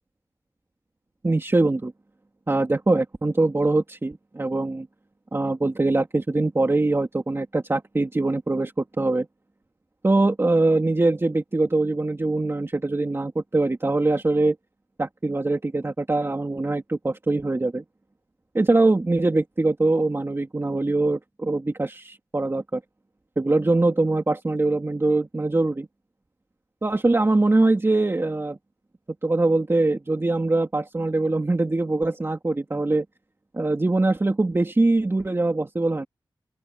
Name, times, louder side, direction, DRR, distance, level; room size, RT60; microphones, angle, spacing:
voice 1, 1.2-1.9 2.5-4.9 5.3-9.3 10.0-14.6 15.0-17.8 18.5-22.8 23.4-25.9 26.8-28.6 29.2-33.0 33.5-36.0, right 2 dB, 30° right, 2.6 m, -23 dB
open air
wide cardioid pair, 85°, 8 cm